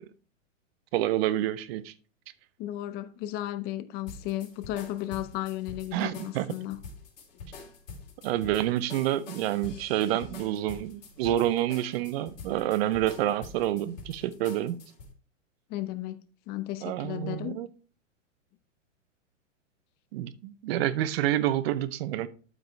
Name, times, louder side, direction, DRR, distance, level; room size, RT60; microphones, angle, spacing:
voice 1, 0.9-1.9 5.9-6.5 8.2-14.8 16.8-17.7 20.1-22.3, right 13 dB, 50° right, 0.8 m, -28 dB
voice 2, 2.6-6.8 15.7-16.2 16.5-17.6, left 14 dB, 25° left, 0.6 m, -34 dB
sound 1, 4.1-15.1, left 4 dB, 70° left, 3.6 m, -46 dB
12.0 x 5.1 x 3.2 m
hypercardioid pair, 130°, 39 cm